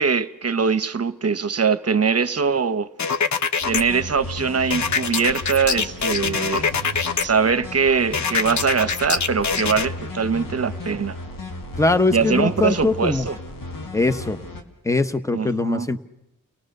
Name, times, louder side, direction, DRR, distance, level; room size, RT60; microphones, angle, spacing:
voice 1, 0.0-2.9 3.7-6.7 7.2-11.2 12.1-13.4 15.3-15.9, right 5 dB, 50° right, 0.9 m, -22 dB
sound 1, 3.0-3.8 4.7-7.2 8.1-9.9, left 6 dB, 60° left, 0.8 m, -24 dB
sound 2, 3.6-14.6, left 1 dB, 85° left, 2.1 m, -35 dB
voice 2, 11.8-13.3 13.9-14.4 14.8-16.0, left 2 dB, 10° left, 1.0 m, -21 dB
30.0 x 18.5 x 6.6 m
wide cardioid pair, 75°, 33 cm